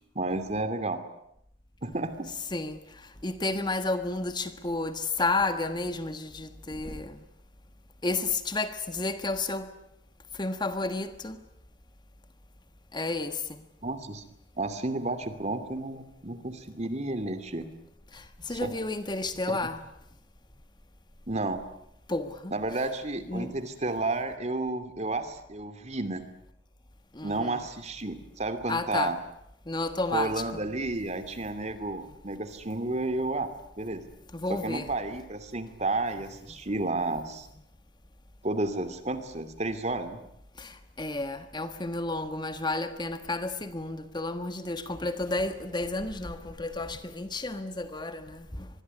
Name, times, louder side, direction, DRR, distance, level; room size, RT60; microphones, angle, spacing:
voice 1, 0.1-1.0 1.8-2.1 13.8-14.2 14.6-17.6 18.5-18.7 19.5-19.6 21.3-21.6 22.5-26.2 27.2-29.2 30.1-33.5 33.8-34.0 34.5-37.5 38.4-40.2, right 2 dB, 35° right, 2.7 m, -31 dB
voice 2, 3.2-7.2 8.0-9.7 10.4-11.4 12.9-13.6 18.1-19.8 22.1-22.5 23.3-23.5 27.1-27.5 28.7-29.2 29.7-30.4 34.3-34.9 40.6-48.7, left 2 dB, 25° left, 1.4 m, -31 dB
25.5 x 21.5 x 9.7 m
head